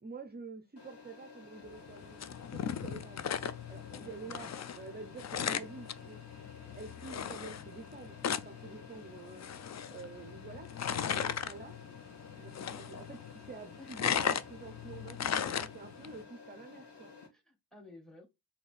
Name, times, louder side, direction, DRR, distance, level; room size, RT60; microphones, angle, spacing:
voice 1, 0.0-3.2 3.7-6.2 6.8-8.2 8.4-9.5 9.9-11.8 12.4-17.1, right 4 dB, 25° right, 0.6 m, -48 dB
sound 1, 0.8-17.3, left 4 dB, 65° left, 1.8 m, -53 dB
sound 2, 1.7-16.2, left 8 dB, 40° left, 0.4 m, -38 dB
voice 2, 3.9-4.7 13.8-13.9 17.3-18.3, left 2 dB, ahead, 1.4 m, -54 dB
4.1 x 2.8 x 3.3 m
cardioid pair, 75°, 43 cm